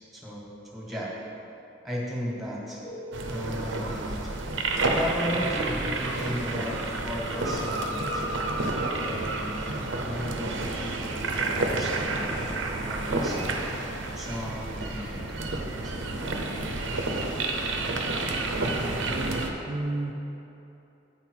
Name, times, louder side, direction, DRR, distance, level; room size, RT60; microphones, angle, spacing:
voice 1, 0.1-1.1 1.8-2.8 3.3-4.2 4.9-8.2 8.9-13.5 14.1-15.9, equal, ahead, -5 dB, 1.4 m, -35 dB
sound 1, 2.8-3.4 7.3-9.2, equal, 35° left, 0.5 m, -39 dB
sound 2, 3.1-19.5, right 2 dB, 80° right, 0.7 m, -30 dB
voice 2, 18.7-20.1, right 2 dB, 35° right, -1 dB, 0.4 m, -33 dB
8.5 x 5.6 x 4.6 m, 2.9 s
head